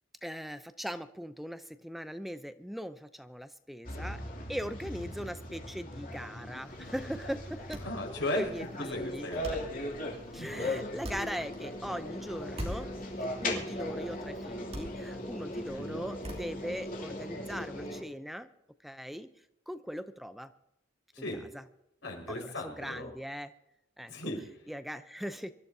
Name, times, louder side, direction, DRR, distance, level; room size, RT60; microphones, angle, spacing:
voice 1, 0.2-4.2 4.5-7.8 8.4-9.3 10.3-12.9 13.4-18.5 18.8-19.3 19.7-20.5 22.3-23.5 24.0-24.1 24.7-25.5, equal, ahead, 10 dB, 0.5 m, -40 dB
sound 1, 3.8-18.0, left 1 dB, 50° left, 2.8 m, -39 dB
sound 2, 6.5-17.1, equal, 35° right, 2.7 m, -46 dB
voice 2, 7.8-8.4 8.8-9.5 10.4-10.7 15.7-16.0 21.1-21.4 22.0-23.1 24.1-24.6, left 1 dB, 85° left, 0 dB, 4.9 m, -37 dB
25.5 x 13.0 x 2.7 m, 0.82 s
head